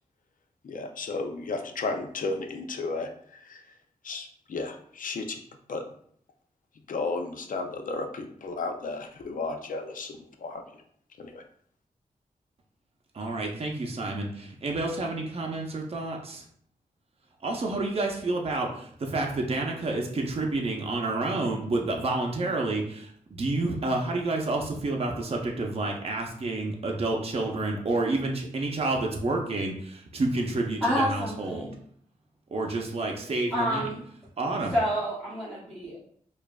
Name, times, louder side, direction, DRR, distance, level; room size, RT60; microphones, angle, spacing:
voice 1, 0.6-3.6 4.0-5.4 5.7-5.9 6.9-10.8 11.2-11.4, left 3 dB, 65° left, 5 dB, 0.5 m, -34 dB
voice 2, 13.1-16.4 17.4-31.7 32.5-33.9 34.4-34.8, right 2 dB, 45° right, 1 dB, 0.7 m, -29 dB
voice 3, 30.8-31.7 33.5-34.0 34.7-36.0, equal, ahead, -9 dB, 1.0 m, -28 dB
4.8 x 2.5 x 2.3 m, 0.62 s
wide cardioid pair, 85°, 15 cm